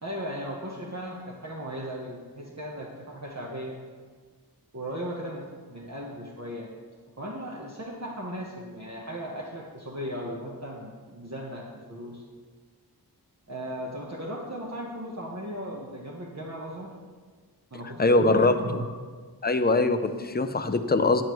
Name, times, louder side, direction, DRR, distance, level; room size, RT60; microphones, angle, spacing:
voice 1, 0.0-3.8 4.7-6.7 7.2-12.2 13.5-16.9 17.7-18.9, equal, 40° right, -4 dB, 1.2 m, -37 dB
voice 2, 18.0-18.8 19.4-21.2, left 2 dB, 25° left, 9 dB, 0.5 m, -22 dB
9.0 x 9.0 x 3.1 m, 1.5 s
wide cardioid pair, 45°, 40 cm